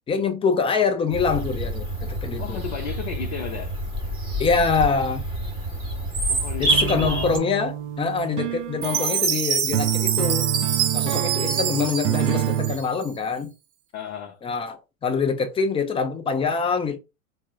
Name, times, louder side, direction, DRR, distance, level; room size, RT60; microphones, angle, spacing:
voice 1, 0.1-2.6 4.4-5.3 6.6-10.5 10.9-13.5 14.4-17.0, left 5 dB, 15° left, 0.5 m, -25 dB
Bird vocalization bird call bird song, 1.1-7.4, right 1 dB, 10° right, 1.2 m, -27 dB
voice 2, 2.4-3.8 6.3-7.4 11.4-11.9 13.9-14.4, left 8 dB, 55° left, 0.7 m, -34 dB
sound 1, 6.7-12.8, right 11 dB, 55° right, 0.5 m, -27 dB
Chime, 8.8-13.2, right 8 dB, 80° right, 0.8 m, -26 dB
4.3 x 2.1 x 2.3 m
hypercardioid pair, 95°, 42 cm